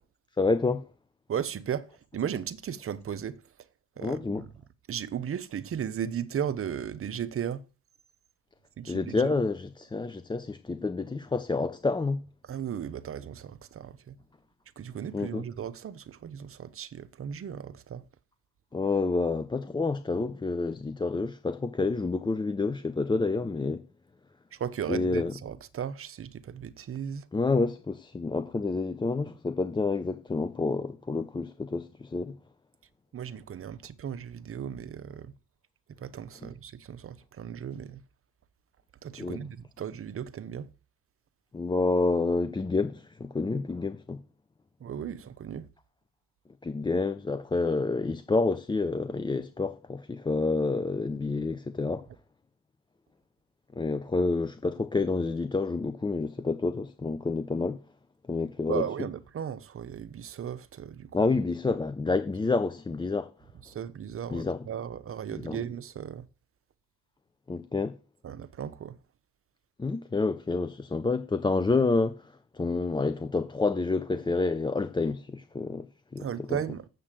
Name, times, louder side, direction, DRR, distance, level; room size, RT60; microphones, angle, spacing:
voice 1, 0.4-0.9 4.0-4.4 8.9-12.2 15.1-15.4 18.7-23.8 24.9-25.3 27.3-32.4 39.2-39.4 41.5-44.2 46.6-52.1 53.8-57.8 58.3-58.8 61.1-63.3 64.3-64.6 65.4-65.6 67.5-67.9 69.8-75.9 76.1-76.3, left 3 dB, 15° left, 0.6 m, -28 dB
voice 2, 1.3-3.4 4.0-4.5 4.9-7.7 8.8-9.4 12.4-14.2 14.8-18.1 24.5-27.3 33.1-35.3 36.0-38.0 39.0-40.7 44.8-45.7 58.7-61.3 61.7-61.8 63.6-66.3 68.2-69.0 76.2-76.9, right 8 dB, 45° right, 0.8 m, -36 dB
7.5 x 6.7 x 7.6 m
cardioid pair, 90°, 30 cm